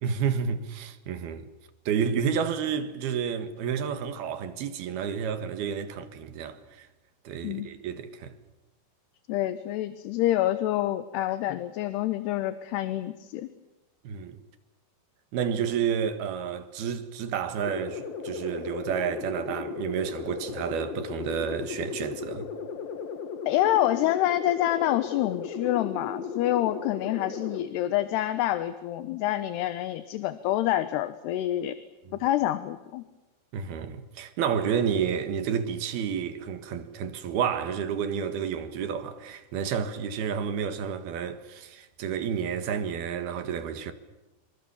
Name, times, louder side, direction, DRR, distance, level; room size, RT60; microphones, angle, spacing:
voice 1, 0.0-1.5 1.9-6.9 7.3-8.3 14.1-14.4 15.3-22.5 33.5-43.9, right 7 dB, 70° right, 3.5 m, -30 dB
voice 2, 9.3-13.5 23.5-31.7 32.1-33.0, left 13 dB, 80° left, 3.0 m, -27 dB
sound 1, 17.6-27.6, left 6 dB, 60° left, 3.3 m, -36 dB
27.0 x 25.0 x 7.1 m
omnidirectional pair, 4.9 m